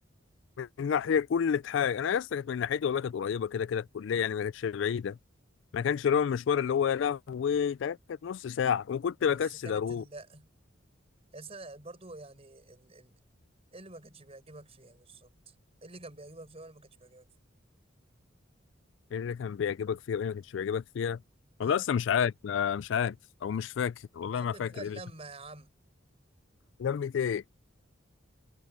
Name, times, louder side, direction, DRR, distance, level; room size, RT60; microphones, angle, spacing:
voice 1, 0.6-5.2 5.7-10.0 19.1-21.2 21.6-23.2 23.4-25.0 26.8-27.4, left 7 dB, 65° left, 0.3 m, -29 dB
voice 2, 9.3-10.5 11.3-13.2 13.7-15.5 15.8-17.3 21.6-21.9 24.3-25.7, right 2 dB, 30° right, 4.7 m, -48 dB
head